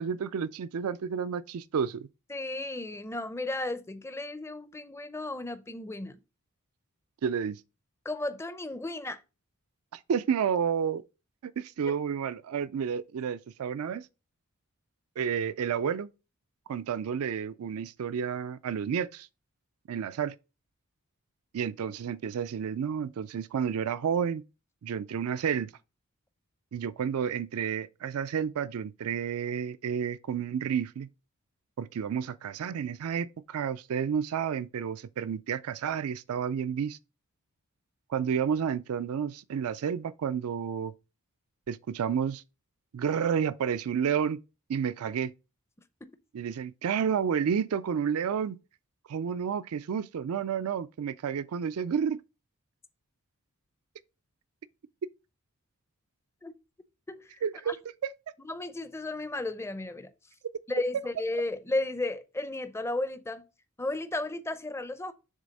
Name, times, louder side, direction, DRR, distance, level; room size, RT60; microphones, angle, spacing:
voice 1, 0.0-2.1 7.2-7.6 9.9-11.0 11.4-14.1 15.2-16.1 16.7-19.3 19.9-20.3 21.5-24.4 24.8-25.7 26.7-31.1 31.8-37.0 38.1-40.9 41.7-42.4 42.9-44.4 44.7-45.3 46.3-48.6 49.1-52.2 57.4-57.7 58.0-58.1, right 7 dB, 75° right, 0.4 m, -30 dB
voice 2, 2.3-6.2 8.0-9.2 11.9-12.0 56.4-56.5 57.1-57.8 58.4-60.1 60.7-63.4 63.8-65.1, left 2 dB, 10° left, 0.5 m, -34 dB
7.3 x 3.4 x 5.2 m
head